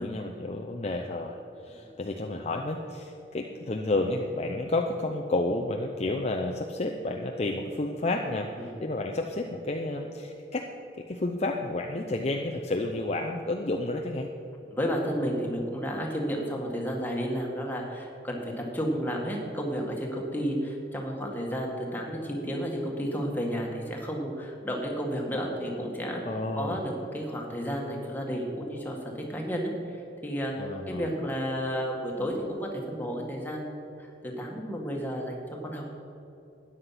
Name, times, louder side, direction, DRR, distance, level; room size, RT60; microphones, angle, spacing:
voice 1, 0.0-10.7 11.0-14.3 26.2-26.8 30.6-31.2, left 2 dB, 35° left, 3 dB, 0.6 m, -31 dB
voice 2, 14.7-26.2 26.6-35.9, equal, 10° left, -1 dB, 1.8 m, -32 dB
13.0 x 9.8 x 5.9 m, 2.9 s
head